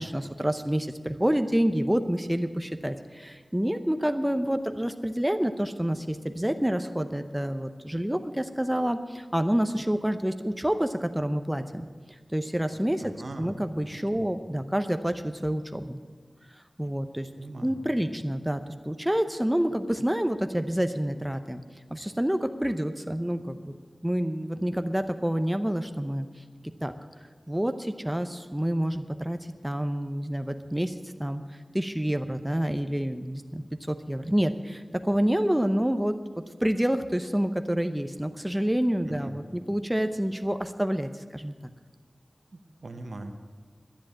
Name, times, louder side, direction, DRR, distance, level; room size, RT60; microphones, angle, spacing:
voice 1, 0.0-11.9 12.3-13.1 13.4-16.0 16.8-17.3 17.6-21.6 21.9-23.8 24.0-26.3 26.8-26.9 27.5-30.9 31.2-31.4 31.7-36.2 36.6-41.5, equal, 10° right, 8 dB, 0.7 m, -28 dB
voice 2, 13.0-13.6 14.2-14.3 17.4-17.7 39.1-39.4 42.5-43.3, right 2 dB, 75° right, 7 dB, 1.1 m, -41 dB
10.5 x 10.5 x 8.7 m, 1.5 s
wide cardioid pair, 60°, 0 cm